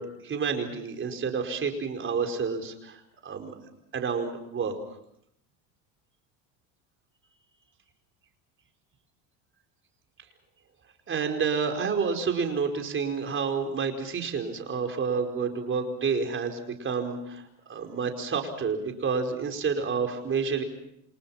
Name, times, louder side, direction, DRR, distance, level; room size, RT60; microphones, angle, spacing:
voice 1, 0.0-3.5 3.9-4.7 11.1-20.6, right 5 dB, 30° right, 4 dB, 4.9 m, -29 dB
29.0 x 27.0 x 5.8 m, 0.74 s
supercardioid pair, 130°, 40 cm